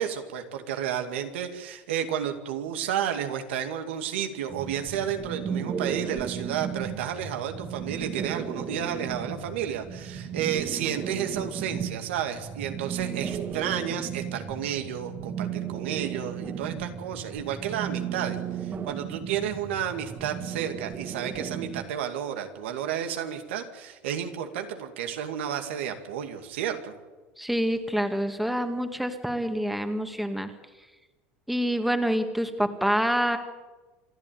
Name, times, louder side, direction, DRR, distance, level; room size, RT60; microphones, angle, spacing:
voice 1, 0.0-26.9, right 9 dB, 85° right, 5 dB, 2.3 m, -31 dB
sound 1, 4.5-21.8, right 7 dB, 35° right, 2.0 m, -35 dB
voice 2, 27.4-30.5 31.5-33.4, equal, ahead, 6 dB, 2.0 m, -27 dB
27.0 x 10.5 x 9.3 m, 1.2 s
supercardioid pair, 105°, 6 cm